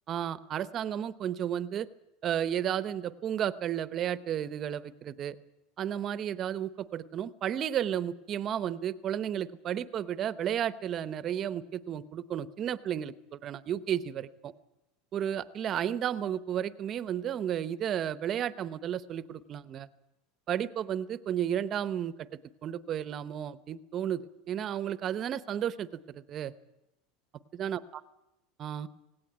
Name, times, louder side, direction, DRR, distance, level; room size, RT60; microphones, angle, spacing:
voice 1, 0.1-1.9 2.2-5.4 5.8-14.5 15.1-19.9 20.5-26.5 27.5-27.8 28.6-28.9, right 10 dB, 35° right, 14 dB, 0.9 m, -33 dB
18.0 x 17.0 x 9.4 m, 0.91 s
supercardioid pair, 135°, 0 cm